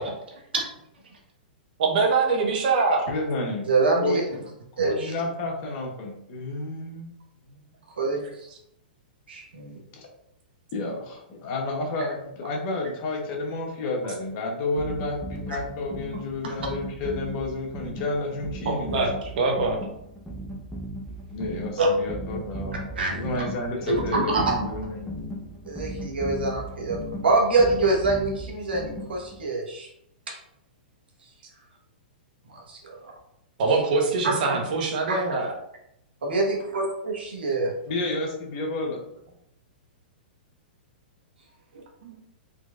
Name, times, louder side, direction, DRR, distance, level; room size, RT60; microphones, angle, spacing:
voice 1, 1.8-3.1 18.6-19.8 33.6-35.5 42.0-42.2, right 4 dB, 60° right, 1 dB, 1.0 m, -23 dB
voice 2, 3.1-3.7 4.0-4.5 4.8-7.1 9.9-10.1 10.7-19.0 21.3-25.2 37.9-39.0, left 2 dB, 40° left, 0 dB, 1.0 m, -31 dB
voice 3, 3.7-4.2 4.8-5.1 8.0-8.5 9.3-9.8 16.5-16.6 21.8-21.9 23.0-23.4 23.9-24.6 25.6-29.9 30.3-30.4 32.5-33.1 34.5-34.6 35.1-35.2 36.2-37.7, right 3 dB, 85° right, -1 dB, 1.2 m, -25 dB
sound 1, 14.8-29.4, right 1 dB, 5° left, 0.6 m, -37 dB
3.8 x 3.1 x 2.4 m, 0.77 s
hypercardioid pair, 125°, 5 cm